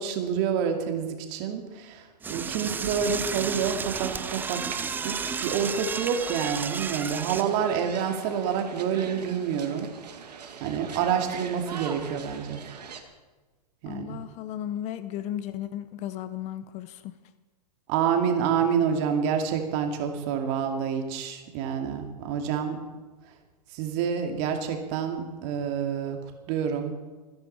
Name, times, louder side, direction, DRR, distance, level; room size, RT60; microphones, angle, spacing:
voice 1, 0.0-9.9 10.6-12.6 13.8-14.2 17.9-22.8 23.7-26.2 26.5-27.0, right 7 dB, 45° right, 4 dB, 2.4 m, -28 dB
Door / Toilet flush, 2.2-7.4, right 5 dB, 10° right, 0.4 m, -32 dB
sound 1, 3.5-13.0, right 6 dB, 70° right, 1.9 m, -42 dB
voice 2, 13.9-17.1, left 11 dB, 35° left, 13 dB, 0.8 m, -35 dB
26.0 x 10.5 x 4.3 m, 1.3 s
hypercardioid pair, 110°, 21 cm